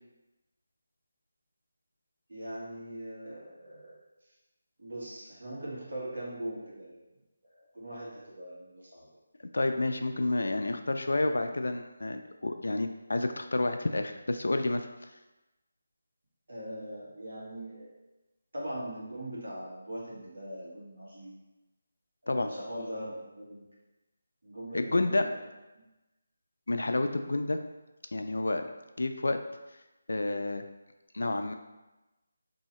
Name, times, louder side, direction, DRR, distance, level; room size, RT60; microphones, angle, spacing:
voice 1, 2.3-3.9 4.8-7.0 7.6-9.0 16.5-17.9 18.5-21.3 22.2-23.6 24.4-25.4 25.7-25.8, right 1 dB, 70° right, -6 dB, 1.4 m, -41 dB
voice 2, 9.5-14.9 22.3-22.5 24.7-25.3 26.7-27.6 28.1-28.6 29.0-29.4 30.1-30.6 31.1-31.5, left 2 dB, 80° left, 7 dB, 0.3 m, -29 dB
2.7 x 2.7 x 4.2 m, 1.0 s
figure-of-eight pair, 175°, 0 cm